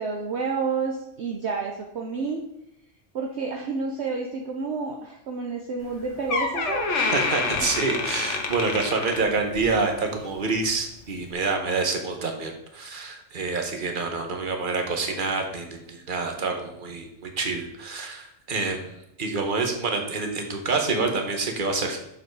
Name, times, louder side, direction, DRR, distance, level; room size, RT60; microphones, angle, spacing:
voice 1, 0.0-2.4 3.1-7.7, right 4 dB, 60° right, 1 dB, 1.1 m, -30 dB
Door, 5.8-6.0 6.3-9.8 10.1-10.4 11.2-11.3, left 4 dB, 65° left, 1.3 m, -27 dB
voice 2, 7.1-22.0, right 4 dB, 40° right, 4 dB, 1.3 m, -27 dB
6.9 x 5.4 x 4.7 m, 0.82 s
omnidirectional pair, 1.3 m